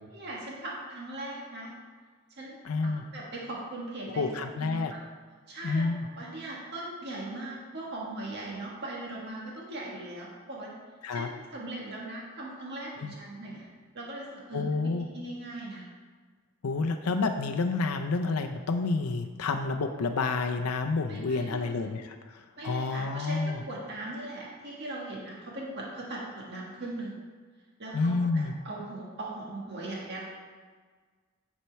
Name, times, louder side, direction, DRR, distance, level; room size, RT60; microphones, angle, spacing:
voice 1, 0.0-1.7 2.3-2.5 2.8-4.3 4.6-4.8 5.5-5.9 6.1-10.7 11.1-13.7 13.9-15.8 21.1-21.9 22.6-27.1 27.8-30.3, right 2 dB, 50° right, -4 dB, 1.6 m, -39 dB
voice 2, 2.6-3.0 4.2-4.9 5.6-6.1 11.0-11.3 13.0-13.1 14.5-15.1 16.6-23.6 27.9-28.5, left 3 dB, 85° left, 6 dB, 0.5 m, -29 dB
10.0 x 4.4 x 4.6 m, 1.5 s
head